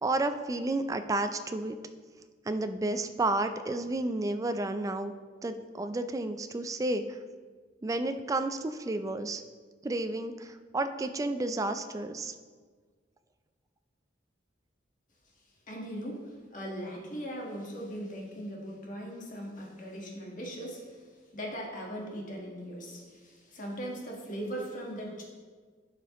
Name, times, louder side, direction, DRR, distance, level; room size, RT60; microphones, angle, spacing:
voice 1, 0.0-1.8 2.5-5.1 5.4-7.2 7.8-9.4 9.8-12.3, right 2 dB, 20° right, 8 dB, 0.3 m, -31 dB
voice 2, 15.7-21.0 21.3-25.2, equal, 45° left, -1 dB, 1.4 m, -39 dB
11.5 x 4.9 x 3.0 m, 1.6 s
head